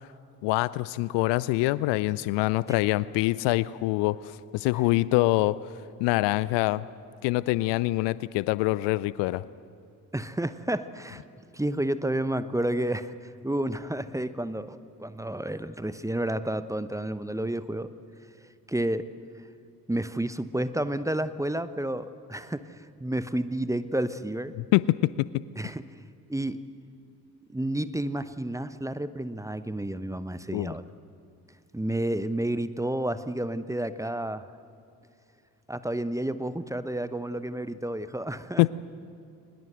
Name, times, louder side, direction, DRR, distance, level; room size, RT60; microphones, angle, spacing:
voice 1, 0.4-5.6 6.0-6.8 7.2-9.4 24.7-25.4 30.5-30.7 38.6-38.7, left 19 dB, 60° left, 19 dB, 0.6 m, -25 dB
voice 2, 10.1-11.2 11.5-17.9 18.7-19.1 19.9-24.5 25.6-25.9 26.3-26.6 27.5-30.9 31.7-34.5 35.7-38.7, right 1 dB, 5° right, 13 dB, 0.9 m, -30 dB
22.0 x 20.5 x 7.9 m, 2.5 s
figure-of-eight pair, 45°, 49 cm